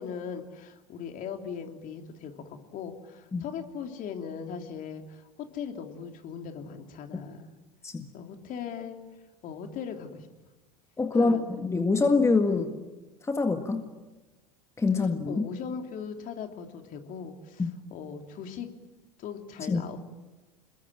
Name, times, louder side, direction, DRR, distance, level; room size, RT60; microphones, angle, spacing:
voice 1, 0.0-5.2 5.5-7.5 8.1-9.0 9.4-10.3 11.1-11.6 12.5-12.7 15.0-18.7 19.2-20.0, left 7 dB, 45° left, 4 dB, 3.2 m, -39 dB
voice 2, 11.0-12.7 13.3-13.8 14.8-15.5 17.6-17.7 19.7-19.8, left 3 dB, 15° left, 6 dB, 1.8 m, -25 dB
27.5 x 22.0 x 9.1 m, 1.2 s
figure-of-eight pair, 80°, 20 cm